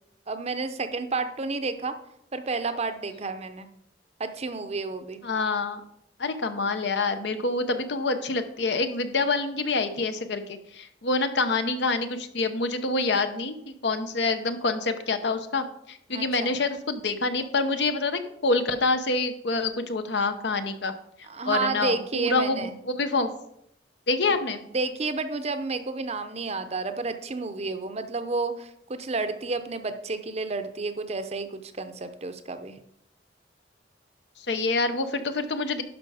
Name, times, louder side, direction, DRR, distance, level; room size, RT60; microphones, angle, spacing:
voice 1, 0.3-1.9 2.3-3.7 4.2-5.2 16.1-16.5 21.3-22.8 24.7-32.8, right 3 dB, 35° right, 9 dB, 0.7 m, -31 dB
voice 2, 5.2-5.8 6.2-20.9 21.4-23.3 24.1-24.6 34.5-35.8, left 3 dB, 65° left, 9 dB, 0.8 m, -26 dB
11.5 x 5.4 x 4.9 m, 0.76 s
head